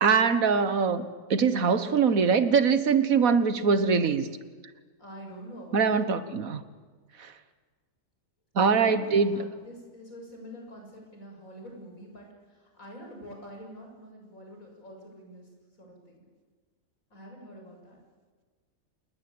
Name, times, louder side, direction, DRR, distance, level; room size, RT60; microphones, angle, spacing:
voice 1, 0.0-4.3 5.7-6.6 8.6-9.3, right 5 dB, 85° right, 11 dB, 1.8 m, -23 dB
voice 2, 5.0-6.0 8.6-15.5 15.8-16.2 17.1-18.0, equal, 85° left, 1 dB, 7.5 m, -46 dB
28.0 x 20.5 x 8.8 m, 1.4 s
omnidirectional pair, 1.4 m